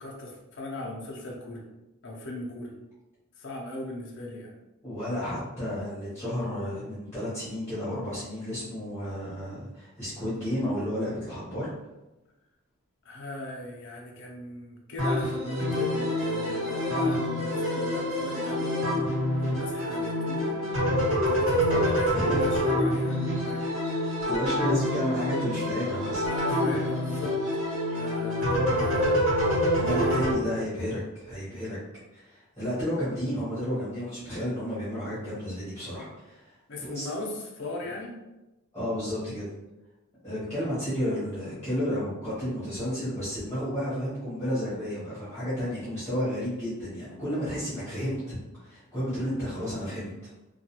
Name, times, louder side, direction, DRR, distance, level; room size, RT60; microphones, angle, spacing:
voice 1, 0.0-1.6 2.0-2.7 3.4-4.5 13.0-18.8 19.4-20.7 21.1-24.1 26.2-27.4 27.9-29.3 29.9-30.3 36.7-38.1, left 2 dB, 55° left, -1 dB, 0.5 m, -39 dB
voice 2, 4.8-11.7 21.7-21.8 22.1-22.5 23.5-26.2 29.8-31.8 32.1-37.1 38.7-39.5 40.2-50.3, equal, 10° left, -12 dB, 0.9 m, -32 dB
sound 1, 15.0-30.3, equal, 65° right, 1.5 m, -26 dB
2.3 x 2.2 x 2.8 m, 1.0 s
head